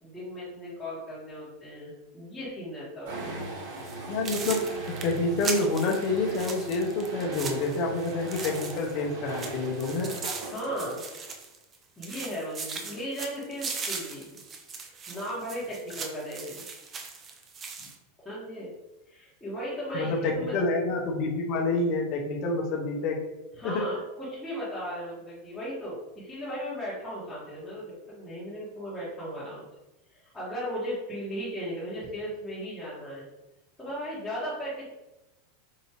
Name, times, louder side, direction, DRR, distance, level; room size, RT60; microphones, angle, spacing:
voice 1, 0.0-3.4 10.4-11.0 12.0-14.4 14.8-16.6 18.2-18.7 19.1-20.6 23.6-29.7 30.1-33.2 33.8-34.9, equal, 10° left, -11 dB, 1.3 m, -36 dB
sound 1, 3.1-11.3, right 2 dB, 70° right, 1.5 m, -39 dB
sound 2, 3.8-3.9 4.2-9.0 9.3-11.8 12.0-17.9, right 5 dB, 25° right, 0.5 m, -38 dB
voice 2, 4.1-4.6 5.0-10.1 19.9-23.2 23.6-23.8, left 3 dB, 50° left, 0 dB, 0.7 m, -28 dB
4.7 x 2.7 x 2.9 m, 0.99 s
supercardioid pair, 135°, 0 cm